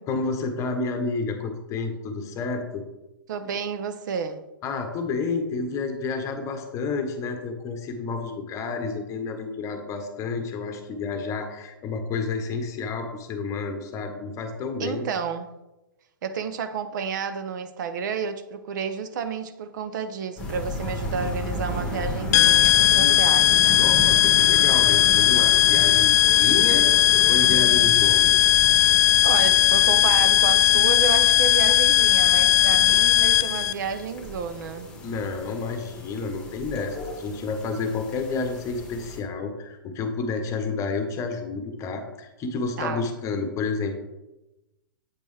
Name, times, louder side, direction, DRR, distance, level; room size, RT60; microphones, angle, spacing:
voice 1, 0.1-2.8 4.6-15.0 22.9-23.2 23.7-26.9 27.3-28.4 35.0-44.0, left 4 dB, 25° left, 6 dB, 1.1 m, -30 dB
voice 2, 3.3-4.4 14.8-15.5 16.2-23.8 29.2-34.9 42.8-43.1, right 6 dB, 55° right, 10 dB, 0.6 m, -31 dB
sound 1, 20.4-39.2, left 1 dB, 10° left, 1.7 m, -35 dB
sound 2, 22.3-33.7, left 13 dB, 50° left, 0.3 m, -18 dB
8.2 x 5.2 x 3.3 m, 0.99 s
hypercardioid pair, 120°, 12 cm